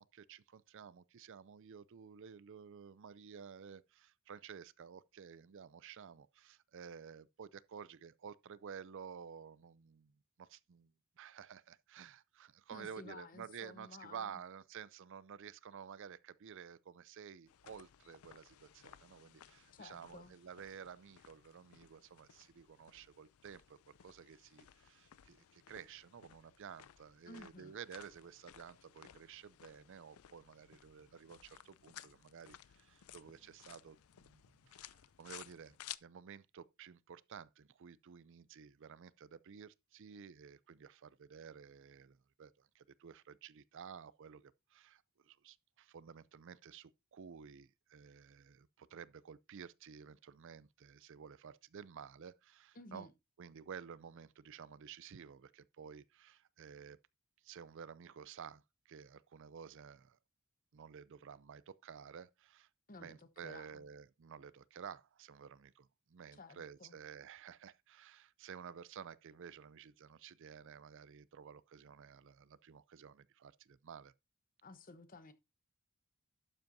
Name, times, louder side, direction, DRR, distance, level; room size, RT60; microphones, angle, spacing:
voice 1, 0.0-10.1 10.4-53.1 53.4-57.0 57.4-60.2 60.7-62.7 63.0-74.1, right 7 dB, 55° right, 0.4 m, -53 dB
voice 2, 12.7-14.4 19.7-20.3 27.3-27.8 52.7-53.1 62.9-63.8 66.3-67.0 74.6-75.3, left 2 dB, 40° left, 0.9 m, -54 dB
sound 1, 17.5-36.0, left 12 dB, 70° left, 0.5 m, -58 dB
11.5 x 7.8 x 2.7 m
head